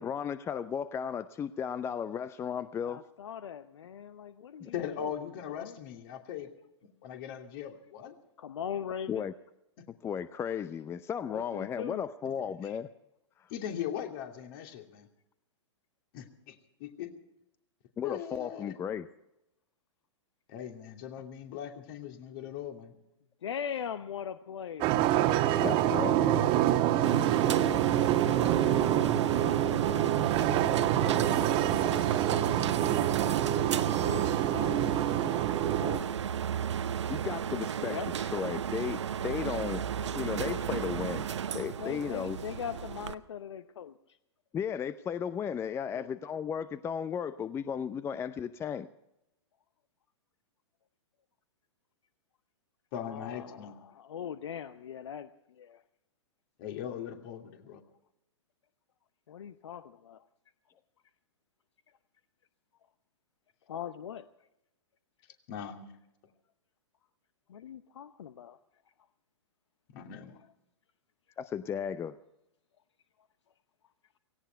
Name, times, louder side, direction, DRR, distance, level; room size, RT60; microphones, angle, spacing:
voice 1, 0.0-3.0 4.6-4.7 9.1-9.3 10.0-12.9 13.4-13.5 18.0-19.1 25.6-26.5 37.1-38.0 38.3-39.8 40.1-41.3 41.5-42.4 44.5-48.9 71.4-72.2, left 7 dB, 15° left, 14 dB, 0.6 m, -35 dB
voice 2, 2.8-4.7 5.0-5.1 5.5-5.8 8.4-9.3 11.3-12.0 23.4-24.9 28.5-29.2 31.7-32.0 32.3-32.6 33.8-34.9 35.8-36.0 37.8-38.1 41.8-43.9 45.9-46.1 53.0-55.3 55.6-55.8 59.3-60.2 63.7-64.2 67.5-68.6, left 8 dB, 70° left, 12 dB, 0.8 m, -40 dB
voice 3, 4.7-6.5 7.0-8.2 12.6-12.7 13.5-15.1 16.1-17.1 18.0-18.8 20.5-23.0 52.9-53.8 56.6-57.8 65.5-65.9 69.9-70.4, left 9 dB, 50° left, 4 dB, 2.7 m, -39 dB
sound 1, 24.8-36.0, right 12 dB, 35° right, 1.3 m, -27 dB
sound 2, 27.0-43.1, right 8 dB, 70° right, 0.8 m, -34 dB
17.5 x 17.5 x 4.5 m, 0.86 s
figure-of-eight pair, 110°, 15 cm